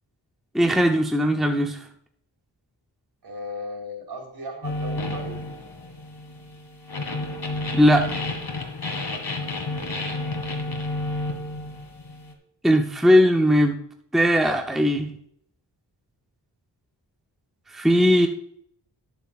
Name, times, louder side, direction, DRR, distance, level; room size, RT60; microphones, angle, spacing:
voice 1, 0.5-1.8 7.7-8.1 12.6-13.8 14.1-15.1 17.7-18.3, equal, ahead, 3 dB, 0.8 m, -19 dB
voice 2, 3.2-5.4 9.1-9.2 9.7-10.1, left 1 dB, 60° right, 1 dB, 3.7 m, -37 dB
sound 1, 4.6-12.3, left 2 dB, 60° left, 2.2 m, -31 dB
19.5 x 7.0 x 2.4 m, 0.68 s
wide cardioid pair, 110°, 44 cm